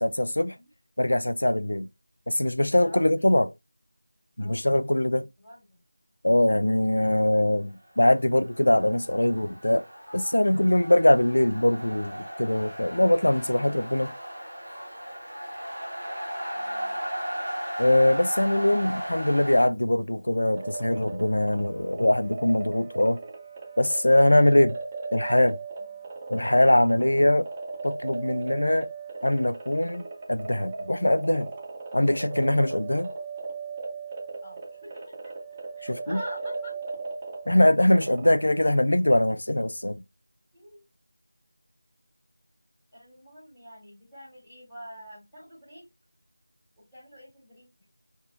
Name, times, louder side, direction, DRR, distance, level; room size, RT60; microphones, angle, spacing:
voice 1, 0.0-0.5 1.0-1.9 2.3-3.5 4.4-5.3 6.2-9.8 10.1-14.1 17.8-23.2 23.8-24.8 25.1-25.6 26.3-27.5 27.8-28.9 29.2-30.0 30.3-31.5 31.9-33.1 35.9-36.2 37.5-40.0, left 1 dB, 75° left, 0.4 m, -22 dB
voice 2, 2.8-3.3 4.4-5.8 16.5-17.0 25.8-26.1 34.4-35.3 35.8-36.7 37.9-38.2 40.5-40.8 42.9-45.8 46.8-47.9, equal, ahead, 2.0 m, -47 dB
sound 1, 8.1-19.7, equal, 40° right, 1.5 m, -36 dB
sound 2, 20.5-39.0, right 4 dB, 20° right, 0.4 m, -38 dB
3.5 x 2.7 x 2.4 m
figure-of-eight pair, 170°, 0 cm